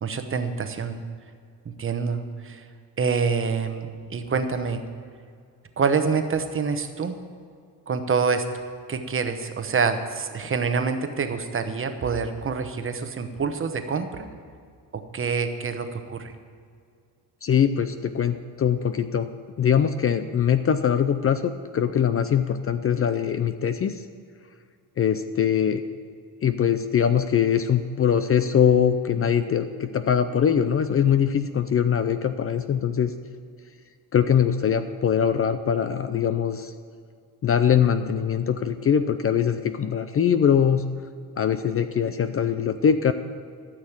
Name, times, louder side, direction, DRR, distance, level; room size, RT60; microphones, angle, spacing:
voice 1, 0.0-1.1 1.6-2.6 3.0-4.8 5.8-7.2 7.9-8.5 8.9-14.3 15.1-16.3, right 5 dB, 30° right, 7 dB, 1.1 m, -26 dB
voice 2, 17.4-19.3 19.6-24.0 25.0-25.8 26.4-33.1 34.1-36.7 37.4-40.8 41.4-43.1, left 8 dB, 35° left, 10 dB, 0.5 m, -22 dB
13.5 x 6.5 x 8.7 m, 2.2 s
cardioid pair, 125°, 40 cm